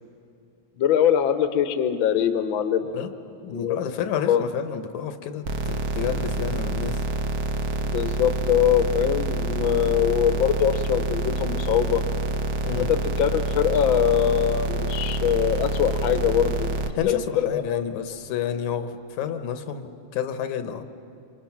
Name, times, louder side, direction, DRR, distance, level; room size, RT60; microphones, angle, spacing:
voice 1, 0.8-2.8 3.5-3.8 4.3-4.4 7.8-12.0 12.8-16.7 17.1-17.8, left 9 dB, 55° left, 9 dB, 1.5 m, -22 dB
voice 2, 2.8-3.1 3.4-7.0 12.6-12.9 17.0-20.8, left 8 dB, 80° left, 9 dB, 2.4 m, -30 dB
sound 1, 5.4-16.9, right 2 dB, 55° right, 2.0 m, -27 dB
28.0 x 26.0 x 5.9 m, 2.7 s
omnidirectional pair, 3.4 m